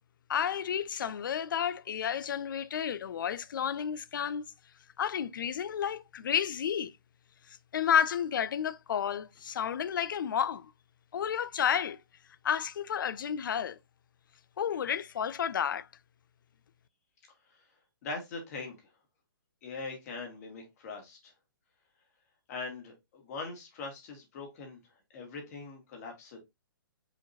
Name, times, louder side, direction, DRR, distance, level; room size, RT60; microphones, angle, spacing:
voice 1, 0.3-4.4 5.0-6.9 7.5-10.7 11.1-12.0 12.4-13.8 14.6-15.9, left 8 dB, 60° left, 0.5 m, -31 dB
voice 2, 18.0-18.8 19.6-21.3 22.5-24.8 25.1-26.4, left 3 dB, 40° left, 2.1 m, -41 dB
4.9 x 3.9 x 2.7 m
figure-of-eight pair, 130°, 12 cm